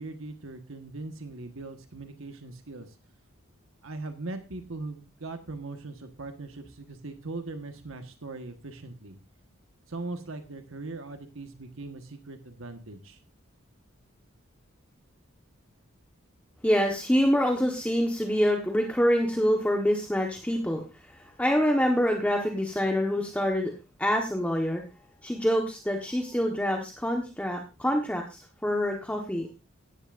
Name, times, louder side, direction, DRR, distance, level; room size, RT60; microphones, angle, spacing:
voice 1, 0.0-3.0 3.8-9.2 9.9-13.2, right 2 dB, 75° right, 6 dB, 1.4 m, -40 dB
voice 2, 16.6-23.7 24.0-29.5, equal, 5° left, 1 dB, 1.2 m, -26 dB
15.5 x 10.5 x 2.5 m, 0.30 s
head